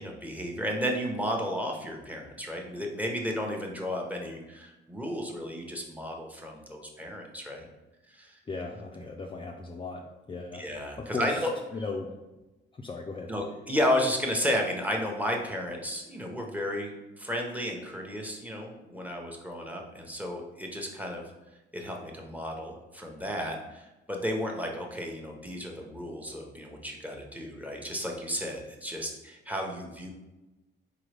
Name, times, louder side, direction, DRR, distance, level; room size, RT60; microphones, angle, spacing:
voice 1, 0.0-7.7 8.1-8.4 10.6-11.5 13.3-21.2 21.7-30.1, equal, 10° right, 1 dB, 0.9 m, -33 dB
voice 2, 8.5-10.6 11.0-12.1 12.7-13.3, left 3 dB, 25° left, 1 dB, 0.5 m, -37 dB
4.0 x 3.8 x 3.3 m, 1.0 s
cardioid pair, 90°, 20 cm